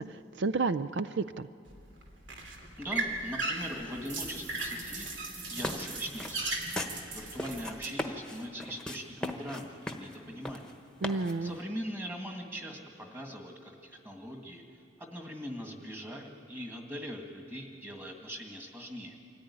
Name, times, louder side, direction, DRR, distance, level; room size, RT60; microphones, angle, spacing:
voice 1, 0.0-1.5 11.0-11.6, right 3 dB, 70° right, 13 dB, 0.4 m, -31 dB
sound 1, 1.7-7.9, right 2 dB, 85° right, 2.7 m, -37 dB
voice 2, 2.8-5.1 5.5-6.5 7.1-10.7 11.4-14.6 15.0-19.2, equal, 10° right, 2 dB, 1.9 m, -41 dB
sound 2, 5.4-11.6, left 1 dB, 5° left, 1.1 m, -39 dB
25.0 x 14.5 x 9.9 m, 2.5 s
head